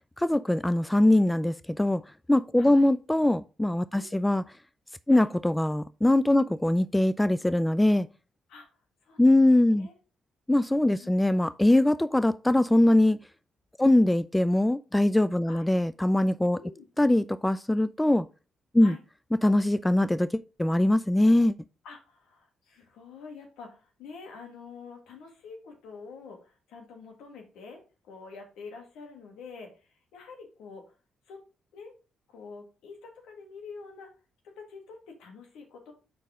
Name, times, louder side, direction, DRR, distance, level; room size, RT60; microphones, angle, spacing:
voice 1, 0.2-2.0 2.3-4.4 5.1-8.1 9.2-9.9 10.5-13.2 13.8-16.6 17.0-18.3 18.7-18.9 19.4-21.6, left 1 dB, 10° left, 0.3 m, -22 dB
voice 2, 2.6-2.9 3.9-4.3 5.1-5.3 6.4-6.6 8.5-8.7 9.0-9.9 10.9-11.1 13.8-14.0 15.5-15.7 16.5-16.9 18.8-19.0 21.8-30.9 31.3-31.4 31.7-31.9 32.3-34.1 34.4-35.9, left 5 dB, 75° left, 1.8 m, -47 dB
5.3 x 4.6 x 4.9 m
hypercardioid pair, 50°, 0 cm